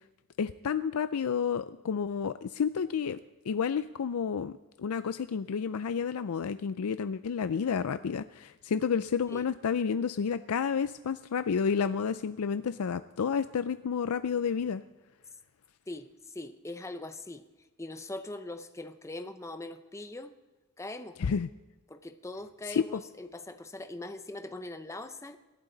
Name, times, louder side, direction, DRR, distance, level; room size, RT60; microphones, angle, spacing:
voice 1, 0.4-3.2 3.5-14.8 21.2-21.5 22.7-23.0, left 6 dB, 90° left, 12 dB, 0.4 m, -30 dB
voice 2, 15.9-17.4 17.8-20.4 20.8-21.2 21.9-25.4, left 2 dB, 15° left, 9 dB, 0.7 m, -41 dB
27.0 x 12.0 x 3.9 m, 1.1 s
head